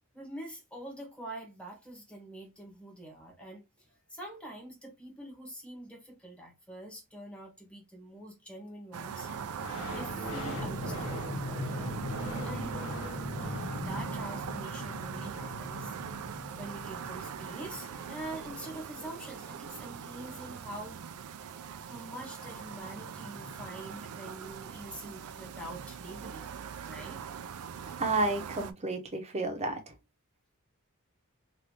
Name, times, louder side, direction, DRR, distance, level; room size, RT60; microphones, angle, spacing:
voice 1, 0.1-9.3 9.9-11.1 12.4-12.7 13.7-15.9 16.3-21.0 21.9-26.5 26.8-27.2, right 1 dB, 5° left, 1.1 m, -45 dB
sound 1, 8.9-28.7, right 7 dB, 90° right, 0.4 m, -41 dB
sound 2, 9.2-19.6 21.6-21.7 21.9-23.7, left 1 dB, 70° left, 0.9 m, -40 dB
voice 2, 28.0-29.9, right 2 dB, 30° right, 0.8 m, -31 dB
3.3 x 2.6 x 2.7 m
head